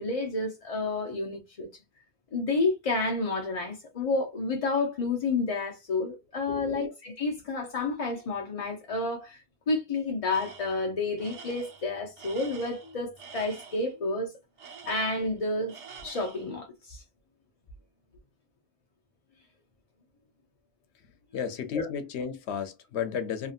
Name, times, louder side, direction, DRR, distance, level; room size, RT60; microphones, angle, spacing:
voice 1, 0.0-1.7 2.3-14.3 14.9-15.7 16.0-17.0 21.7-21.9, left 3 dB, 45° left, 0.5 m, -30 dB
voice 2, 6.5-6.8 21.3-23.5, left 7 dB, 80° left, 0.9 m, -33 dB
Tools, 10.3-10.8 11.2-13.9 14.6-15.4 15.7-16.5, right 6 dB, 85° right, 1.1 m, -47 dB
2.8 x 2.7 x 2.3 m
omnidirectional pair, 1.1 m